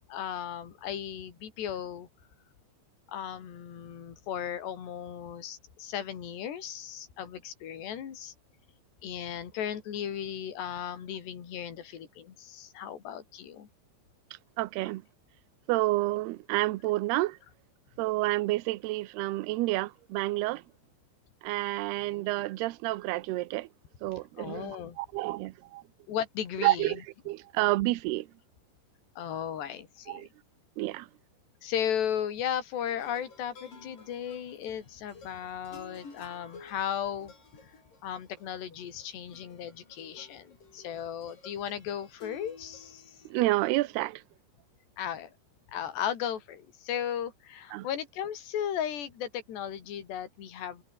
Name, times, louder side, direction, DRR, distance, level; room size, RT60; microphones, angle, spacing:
voice 1, 0.1-2.1 3.1-8.3 9.0-13.7 24.4-25.0 26.1-27.0 29.2-30.3 31.6-37.3 37.6-37.7 38.0-43.2 45.0-45.3 45.7-50.8, left 9 dB, 60° left, 5.4 m, -36 dB
voice 2, 14.6-15.0 15.7-17.4 18.0-20.6 21.4-23.7 24.0-25.8 26.6-27.0 27.3-28.3 30.1-30.3 30.8-31.1 43.3-44.2 47.7-47.9, right 19 dB, 75° right, 2.5 m, -29 dB
sound 1, 32.9-43.8, left 4 dB, 45° left, 8.3 m, -53 dB
omnidirectional pair, 5.5 m